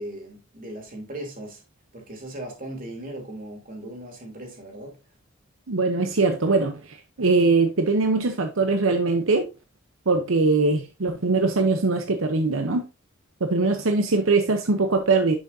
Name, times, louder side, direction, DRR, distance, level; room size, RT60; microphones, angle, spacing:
voice 1, 0.0-1.6 1.9-5.0, right 1 dB, 45° right, 3.1 m, -38 dB
voice 2, 5.7-9.5 10.1-12.8 13.4-15.3, right 3 dB, 80° right, 0.9 m, -22 dB
10.5 x 6.1 x 2.7 m
head